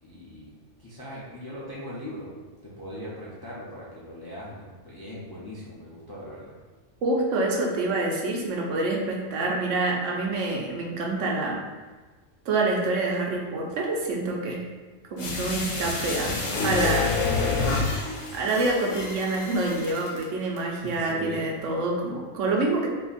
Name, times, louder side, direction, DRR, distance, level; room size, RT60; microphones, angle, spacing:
voice 1, 0.0-0.5 0.8-6.6 20.8-21.4, equal, 35° left, -7 dB, 0.4 m, -40 dB
voice 2, 7.0-11.6 12.5-14.6 15.1-17.1 18.3-22.9, right 2 dB, 80° right, -1 dB, 1.0 m, -27 dB
sound 1, 15.2-20.2 20.6-20.7, left 3 dB, 75° left, 1.0 m, -28 dB
2.8 x 2.5 x 3.8 m, 1.3 s
omnidirectional pair, 1.3 m